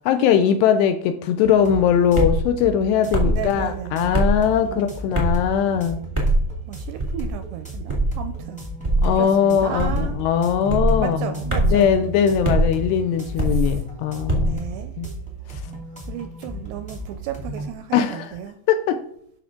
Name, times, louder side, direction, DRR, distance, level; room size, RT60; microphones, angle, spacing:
voice 1, 0.1-6.0 9.0-11.2 11.6-14.7 15.0-15.1 15.5-15.6 17.9-18.3 18.7-19.0, left 8 dB, 80° left, 9 dB, 2.5 m, -20 dB
sound 1, 1.4-17.7, right 2 dB, 5° left, 0.8 m, -35 dB
sound 2, 2.1-2.4 3.1-3.4 4.1-4.4 5.1-5.4 6.1-6.4 7.0-7.3 7.9-8.1 8.8-9.1 9.8-10.1 10.7-10.9 11.5-11.8 12.4-12.6 13.4-13.7 14.3-14.5, right 1 dB, 15° right, 1.1 m, -20 dB
voice 2, 3.2-4.2 4.6-4.9 6.7-8.6 9.1-10.2 11.0-12.0 13.5-13.8 14.3-14.9 16.1-18.6, right 9 dB, 85° right, 9 dB, 2.4 m, -34 dB
12.5 x 5.9 x 3.7 m, 0.67 s
omnidirectional pair, 5.3 m